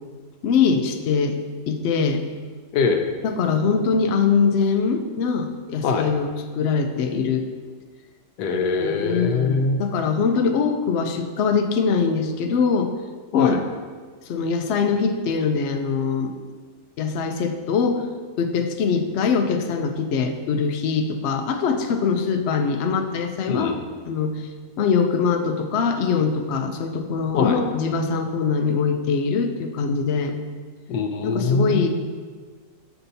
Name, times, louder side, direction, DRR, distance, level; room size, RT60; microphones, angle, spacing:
voice 1, 0.4-1.4 1.7-2.2 3.2-6.3 6.6-7.5 8.8-12.9 13.3-13.6 14.3-16.3 17.0-18.0 18.4-23.8 24.1-24.5 24.8-30.3 31.2-31.9, left 5 dB, 75° left, 5 dB, 0.6 m, -22 dB
voice 2, 2.7-3.1 5.8-6.1 8.4-9.8 13.3-13.6 23.5-23.8 27.3-27.6 30.9-31.9, left 4 dB, 90° left, 5 dB, 1.2 m, -22 dB
6.9 x 5.6 x 2.7 m, 1.5 s
omnidirectional pair, 1.7 m